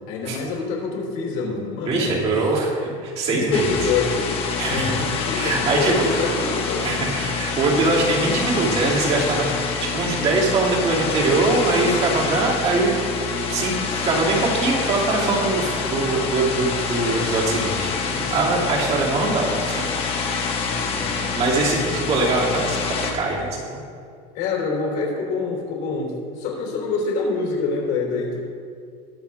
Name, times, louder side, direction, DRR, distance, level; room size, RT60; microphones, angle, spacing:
voice 1, 0.1-2.5 3.3-4.4 4.7-7.2 18.9-19.0 20.6-21.3 24.3-28.4, left 4 dB, 65° left, -1 dB, 3.2 m, -26 dB
voice 2, 1.9-3.7 4.6-4.9 5.3-6.3 6.8-9.4 9.8-12.9 13.5-19.8 21.1-23.8, right 3 dB, 40° right, -4 dB, 2.9 m, -22 dB
sound 1, 3.5-23.1, left 5 dB, 35° left, 1.6 m, -26 dB
21.0 x 7.0 x 3.6 m, 2.3 s
cardioid pair, 150°, 16 cm